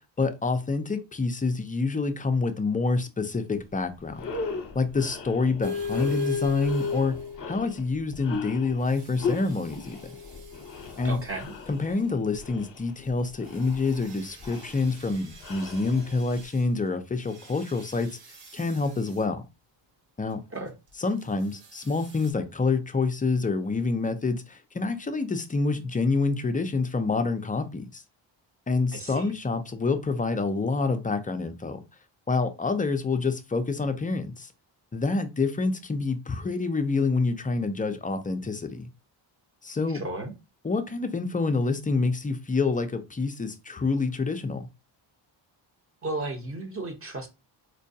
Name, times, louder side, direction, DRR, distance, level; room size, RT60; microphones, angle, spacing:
voice 1, 0.2-4.2 4.8-7.2 7.5-10.0 11.0-11.2 11.7-18.2 18.5-19.4 20.2-20.4 21.0-28.0 28.7-31.8 32.3-34.5 34.9-38.9 39.6-40.0 40.6-44.6, left 3 dB, 20° left, 0.3 m, -27 dB
sound 1, 3.6-3.7 4.1-16.4, left 4 dB, 45° left, 0.8 m, -38 dB
sound 2, 5.6-7.7 8.9-11.3 13.5-16.6 17.2-19.2 21.6-22.3, left 5 dB, 70° right, 1.0 m, -37 dB
voice 2, 11.0-11.5 20.5-20.7 28.9-29.3 39.9-40.3 46.0-47.3, right 2 dB, 30° right, 0.8 m, -34 dB
4.5 x 2.2 x 2.6 m
cardioid pair, 105°, 47 cm